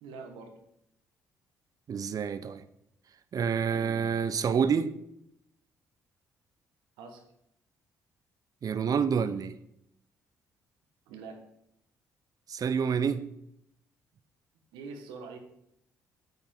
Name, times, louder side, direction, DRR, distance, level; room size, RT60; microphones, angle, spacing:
voice 1, 0.0-0.6 3.7-4.1 7.0-7.2 11.1-11.4 14.7-15.4, right 4 dB, 70° right, 1.6 m, -44 dB
voice 2, 1.9-2.6 3.3-4.9 8.6-9.5 12.5-13.2, right 6 dB, 45° right, 0.8 m, -28 dB
9.2 x 8.2 x 3.9 m
hypercardioid pair, 50°, 8 cm